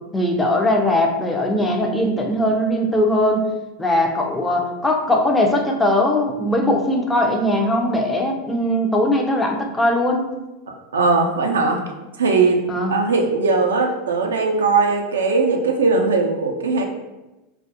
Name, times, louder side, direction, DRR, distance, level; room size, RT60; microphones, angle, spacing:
voice 1, 0.1-3.5 3.8-10.2 12.7-12.9, left 1 dB, 10° left, 2 dB, 0.4 m, -20 dB
voice 2, 10.9-11.8 12.2-12.6 12.9-16.8, right 4 dB, 85° right, 2 dB, 0.3 m, -19 dB
2.3 x 2.0 x 2.7 m, 1.0 s
hypercardioid pair, 95°, 0 cm